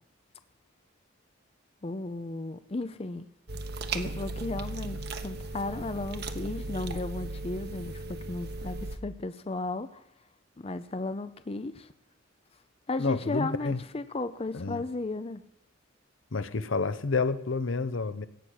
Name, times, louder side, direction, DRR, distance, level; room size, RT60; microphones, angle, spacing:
voice 1, 1.8-3.3 3.9-10.0 10.6-11.9 12.9-15.4, left 2 dB, 30° left, 0.5 m, -35 dB
sound 1, 3.5-9.0, right 2 dB, 50° right, 1.1 m, -36 dB
voice 2, 13.0-13.8 14.5-14.8 16.3-18.3, left 4 dB, 70° left, 0.8 m, -29 dB
17.0 x 6.2 x 9.7 m
head